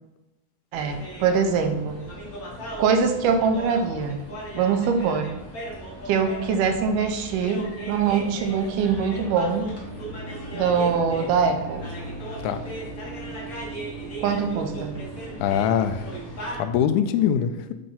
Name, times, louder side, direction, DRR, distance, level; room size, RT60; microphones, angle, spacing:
sound 1, 0.7-16.6, equal, 65° left, 0.9 m, -37 dB
voice 1, 0.7-2.1 2.8-4.2 4.5-5.3 6.1-9.7 10.5-11.8 14.2-15.0, right 6 dB, 80° right, 5 dB, 2.1 m, -23 dB
music of the otherside, 9.8-16.9, right 3 dB, 60° right, 1.7 m, -40 dB
voice 2, 15.4-16.1 16.5-17.7, left 9 dB, 85° left, 8 dB, 1.8 m, -23 dB
7.5 x 2.6 x 5.5 m, 0.92 s
omnidirectional pair, 3.9 m